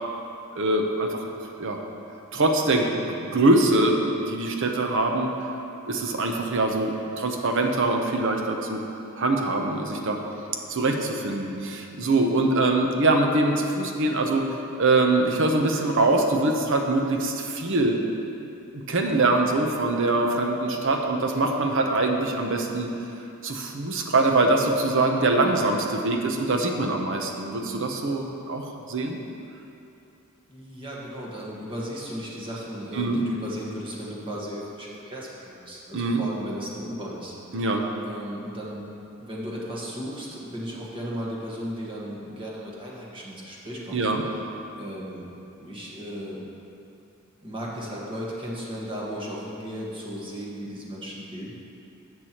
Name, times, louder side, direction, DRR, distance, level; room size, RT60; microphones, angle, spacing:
voice 1, 0.5-1.3 1.6-1.8 2.3-5.3 5.9-8.8 9.2-10.2 10.7-14.5 14.8-18.0 18.7-22.9 23.4-29.2 32.9-33.2 35.9-36.2 37.5-37.8 43.9-44.2, right 2 dB, 65° right, 2 dB, 0.8 m, -23 dB
voice 2, 30.5-37.3 38.0-38.9 39.2-44.1 44.8-45.3 45.6-46.4 47.4-51.5, equal, 25° right, -5 dB, 1.5 m, -35 dB
13.0 x 7.4 x 3.0 m, 2.8 s
head